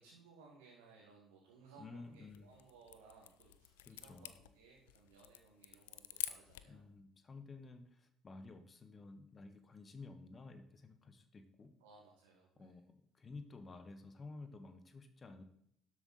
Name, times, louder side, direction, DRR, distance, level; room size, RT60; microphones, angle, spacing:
voice 1, 0.0-6.9 11.8-12.8, right 4 dB, 80° right, -4 dB, 2.0 m, -62 dB
voice 2, 1.8-2.5 3.9-4.3 6.7-11.7 12.6-15.4, left 3 dB, 35° left, 9 dB, 1.2 m, -53 dB
sound 1, 2.1-6.8, left 14 dB, 80° left, 0.5 m, -48 dB
12.5 x 7.6 x 4.2 m, 0.71 s
figure-of-eight pair, 50°, 0 cm